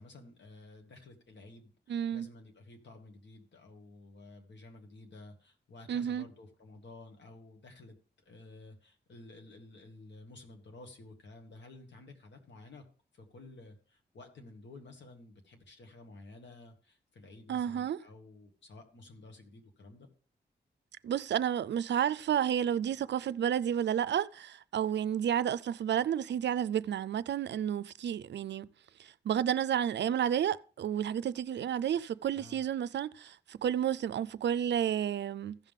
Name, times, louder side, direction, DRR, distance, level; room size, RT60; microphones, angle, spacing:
voice 1, 0.0-8.0 8.3-12.8 13.1-20.1 32.3-32.6, left 2 dB, 80° left, 1.9 m, -52 dB
voice 2, 1.9-2.3 5.9-6.2 17.5-18.0 21.0-28.7 29.0-35.6, right 9 dB, 75° right, 0.4 m, -31 dB
15.0 x 5.7 x 3.6 m
cardioid pair, 75°, 18 cm